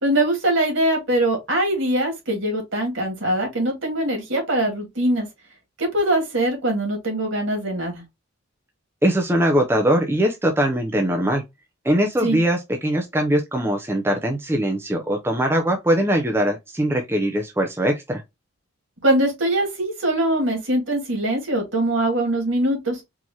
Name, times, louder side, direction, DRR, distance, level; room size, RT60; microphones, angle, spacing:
voice 1, 0.0-5.3 5.8-8.0 12.2-12.4 19.0-23.0, right 1 dB, 65° right, 2.0 m, -22 dB
voice 2, 9.0-11.4 11.8-18.2, right 1 dB, 10° right, 0.5 m, -21 dB
4.6 x 2.8 x 2.7 m
head